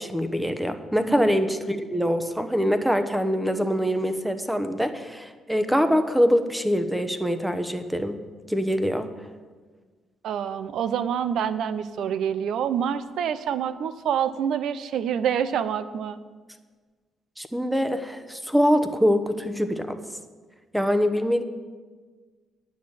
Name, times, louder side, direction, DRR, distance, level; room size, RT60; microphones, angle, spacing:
voice 1, 0.0-8.2 8.5-9.1 17.4-20.0 20.7-21.4, equal, 5° right, 9 dB, 1.0 m, -24 dB
voice 2, 10.2-16.2, right 8 dB, 75° right, 14 dB, 0.6 m, -27 dB
9.3 x 6.3 x 8.7 m, 1.4 s
cardioid pair, 90°, 0 cm